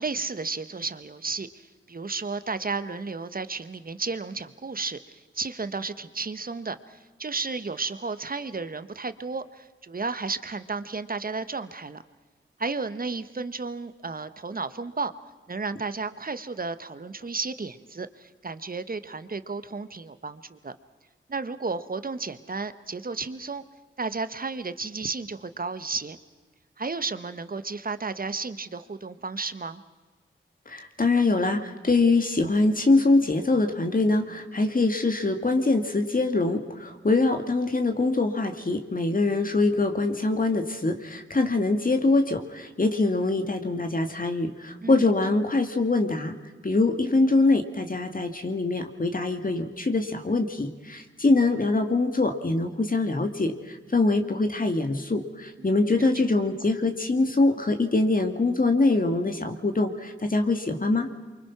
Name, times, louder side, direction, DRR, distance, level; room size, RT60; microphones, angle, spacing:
voice 1, 0.0-1.5 1.9-12.0 12.6-15.1 15.5-20.7 21.3-23.6 24.0-26.2 26.8-29.8 44.8-45.0 55.6-56.1, right 4 dB, 45° right, 12 dB, 1.4 m, -33 dB
voice 2, 30.7-46.3 46.6-61.1, left 3 dB, 40° left, 6 dB, 2.3 m, -24 dB
28.5 x 24.0 x 6.1 m, 1.3 s
wide cardioid pair, 65°, 21 cm